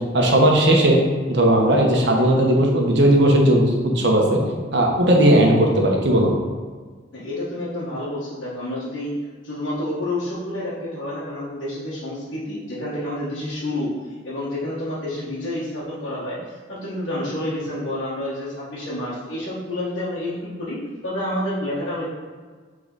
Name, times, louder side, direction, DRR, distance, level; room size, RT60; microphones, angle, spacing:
voice 1, 0.1-1.0 1.3-4.4 4.7-6.3, right 1 dB, 60° right, 0 dB, 1.1 m, -17 dB
voice 2, 7.1-9.1 9.4-13.9 14.2-20.8 21.0-22.1, left 1 dB, 85° left, -10 dB, 1.5 m, -29 dB
6.7 x 3.9 x 4.0 m, 1.5 s
head